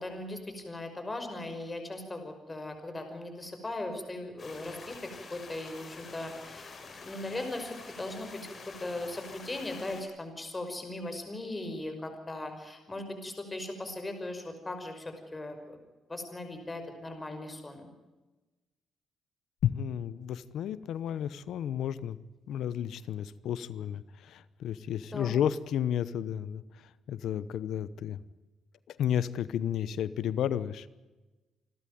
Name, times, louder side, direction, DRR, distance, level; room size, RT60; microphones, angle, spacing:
voice 1, 0.0-6.8 7.0-15.8 16.1-17.9 25.1-25.3, left 2 dB, 20° left, 6 dB, 5.7 m, -39 dB
sound 1, 4.4-10.0, left 4 dB, 45° left, 4.9 m, -47 dB
voice 2, 19.6-22.2 22.5-26.6 27.1-28.2 28.9-30.9, left 10 dB, 75° left, 17 dB, 0.9 m, -32 dB
28.0 x 12.5 x 9.4 m, 1.1 s
cardioid pair, 90°, 0 cm